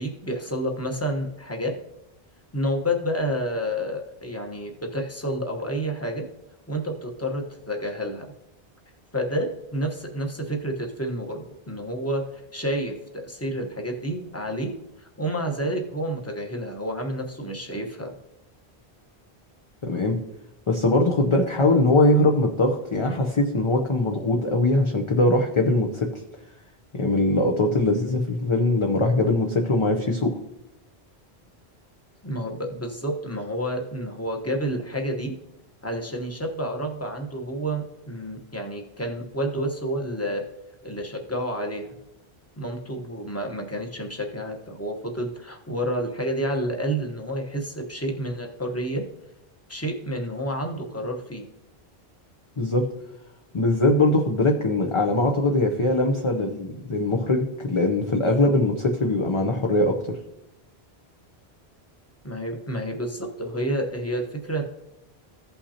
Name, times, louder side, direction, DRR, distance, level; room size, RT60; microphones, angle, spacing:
voice 1, 0.0-1.7 2.5-6.2 6.7-8.3 9.1-14.7 15.0-18.1 32.2-35.3 35.8-40.4 40.8-41.9 42.6-49.0 49.7-51.4 62.2-64.6, equal, 15° left, 2 dB, 1.1 m, -29 dB
voice 2, 19.8-20.2 20.7-26.2 26.9-30.4 52.6-52.9 53.5-60.2, left 2 dB, 35° left, 2 dB, 0.7 m, -21 dB
15.5 x 5.6 x 2.8 m, 0.89 s
omnidirectional pair, 1.1 m